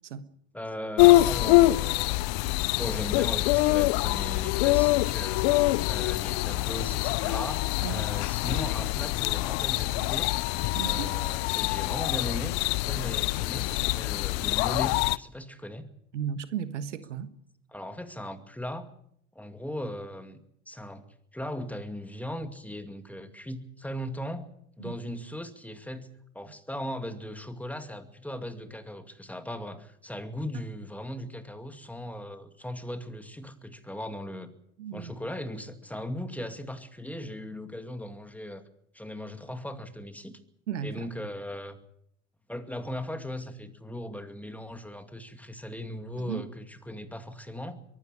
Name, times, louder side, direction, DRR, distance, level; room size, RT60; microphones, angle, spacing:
voice 1, 0.5-2.1 2.8-5.4 5.8-10.3 10.8-15.9 17.7-18.9 19.3-20.4 20.7-21.0 21.3-24.5 24.8-26.1 26.3-34.5 34.9-38.6 38.9-40.4 40.8-41.8 42.5-47.8, left 1 dB, 5° left, 8 dB, 2.3 m, -38 dB
sound 1, 1.0-15.2, left 19 dB, 60° left, 0.7 m, -25 dB
voice 2, 10.7-11.1 16.1-17.3 24.8-24.9 34.8-35.1 40.7-41.1 46.2-46.4, right 8 dB, 85° right, 12 dB, 1.4 m, -34 dB
23.0 x 13.0 x 9.8 m, 0.72 s
hypercardioid pair, 80°, 35 cm